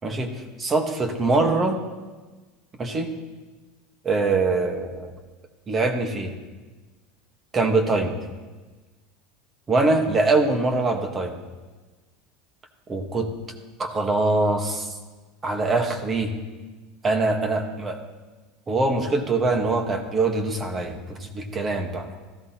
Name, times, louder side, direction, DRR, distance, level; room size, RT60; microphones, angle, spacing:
voice 1, 0.6-1.8 2.8-3.1 4.0-5.1 5.7-6.3 7.5-8.2 9.7-11.4 12.9-13.3 13.8-15.0 15.4-16.3 17.0-18.0 18.7-22.2, right 3 dB, 20° right, 5 dB, 1.3 m, -23 dB
17.0 x 14.5 x 2.9 m, 1.3 s
supercardioid pair, 155°, 0 cm